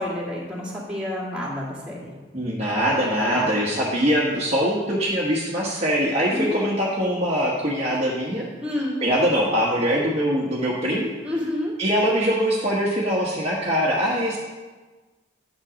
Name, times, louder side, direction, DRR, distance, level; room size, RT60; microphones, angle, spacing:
voice 1, 0.0-2.1 3.3-3.5 6.3-6.5 8.6-9.0 11.2-11.7, left 1 dB, 5° right, -5 dB, 2.2 m, -29 dB
voice 2, 2.3-8.4 9.0-11.1 11.8-14.4, equal, 30° right, -5 dB, 1.2 m, -22 dB
10.5 x 7.5 x 5.1 m, 1.3 s
head